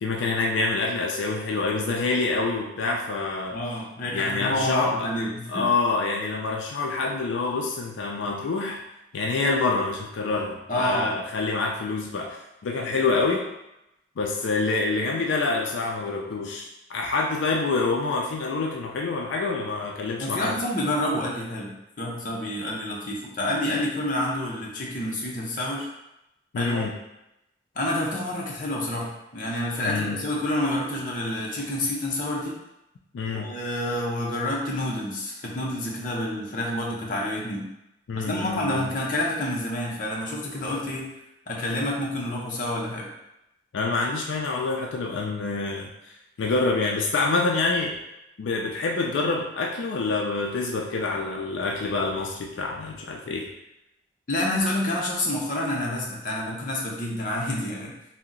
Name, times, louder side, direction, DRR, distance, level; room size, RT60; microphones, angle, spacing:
voice 1, 0.0-3.6 4.1-5.1 5.5-8.8 9.1-13.5 14.2-20.6 26.5-26.9 29.8-30.2 33.1-33.5 38.1-38.9 43.7-45.9 46.4-48.0 48.4-53.5, left 3 dB, 85° left, 0 dB, 0.4 m, -26 dB
voice 2, 3.5-5.7 10.7-11.2 20.2-25.9 26.5-26.9 27.7-32.6 33.3-37.7 38.1-41.1 41.5-43.1 54.3-57.9, left 1 dB, 45° left, -3 dB, 0.6 m, -28 dB
2.8 x 2.0 x 3.7 m, 0.88 s
head